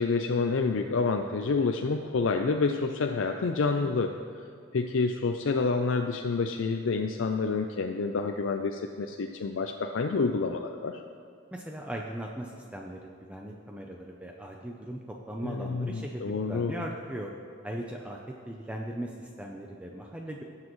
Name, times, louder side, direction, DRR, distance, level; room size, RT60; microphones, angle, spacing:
voice 1, 0.0-4.1 4.7-11.0 15.4-16.8, left 4 dB, 80° left, 4 dB, 0.5 m, -28 dB
voice 2, 11.5-17.3 17.6-18.2 18.5-20.4, right 1 dB, 5° right, 0 dB, 0.6 m, -38 dB
17.5 x 7.5 x 3.1 m, 2.4 s
head